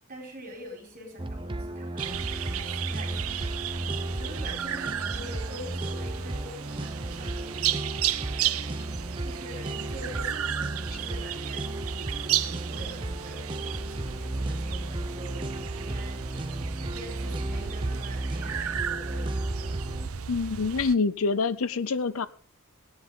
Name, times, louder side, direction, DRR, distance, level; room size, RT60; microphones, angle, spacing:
voice 1, 0.1-3.4 3.7-7.5 8.3-8.8 9.2-13.5 13.8-15.5 15.7-19.3, right 1 dB, 40° right, 1 dB, 4.8 m, -45 dB
sound 1, 1.2-20.1, right 1 dB, 20° right, 0.8 m, -34 dB
sound 2, 2.0-20.9, right 10 dB, 70° right, 0.6 m, -34 dB
voice 2, 20.3-22.3, left 4 dB, 65° left, 14 dB, 0.6 m, -26 dB
18.0 x 10.5 x 3.8 m, 0.43 s
head